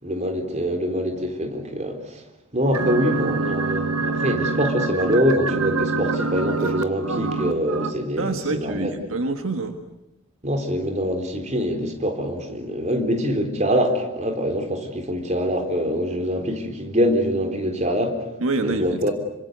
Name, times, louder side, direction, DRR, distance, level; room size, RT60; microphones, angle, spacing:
voice 1, 0.0-2.2 2.5-8.9 10.4-18.3 18.6-19.1, equal, 30° right, 5 dB, 3.9 m, -24 dB
sound 1, 2.7-7.9, right 4 dB, 85° right, 1.5 m, -25 dB
voice 2, 8.2-9.8 18.4-19.1, right 3 dB, 70° right, 7 dB, 1.6 m, -26 dB
27.0 x 25.0 x 8.1 m, 0.87 s
head